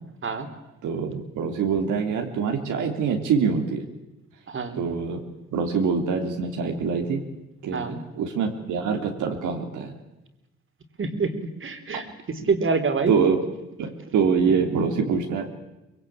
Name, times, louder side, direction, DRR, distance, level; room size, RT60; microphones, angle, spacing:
voice 1, 0.8-3.8 4.8-5.2 5.5-7.2 7.6-9.9 13.1-13.4 13.8-15.5, right 6 dB, 80° right, 3 dB, 3.1 m, -24 dB
voice 2, 4.5-4.8 7.7-8.0 11.0-11.3 11.6-13.1, right 4 dB, 40° right, 8 dB, 3.6 m, -26 dB
24.5 x 22.0 x 8.7 m, 1.0 s
cardioid pair, 90°, 30 cm